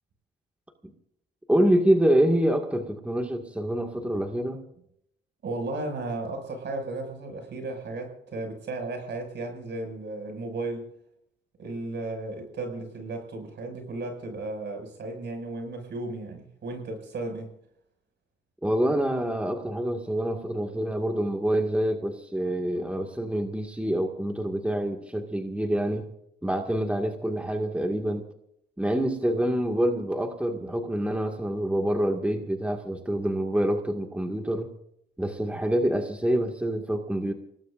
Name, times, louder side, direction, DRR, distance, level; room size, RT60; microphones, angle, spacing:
voice 1, 1.5-4.6 18.6-26.1 26.4-28.2 28.8-34.7 35.2-37.3, right 1 dB, 5° right, 3 dB, 2.0 m, -26 dB
voice 2, 5.4-10.9 11.6-17.5, right 2 dB, 60° right, 4 dB, 6.4 m, -34 dB
29.0 x 18.5 x 2.6 m, 0.74 s
cardioid pair, 90°, 20 cm